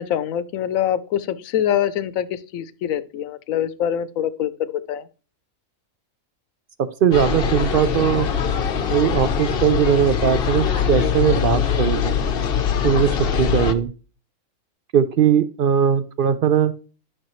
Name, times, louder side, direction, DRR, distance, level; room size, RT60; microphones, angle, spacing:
voice 1, 0.0-5.0, left 10 dB, 75° left, 15 dB, 1.1 m, -24 dB
voice 2, 6.8-8.3 8.9-12.1 12.8-13.9 14.9-16.7, right 8 dB, 75° right, 13 dB, 0.5 m, -19 dB
sound 1, 7.1-13.7, left 7 dB, 50° left, 0.8 m, -22 dB
12.0 x 6.1 x 3.1 m, 0.37 s
omnidirectional pair, 1.5 m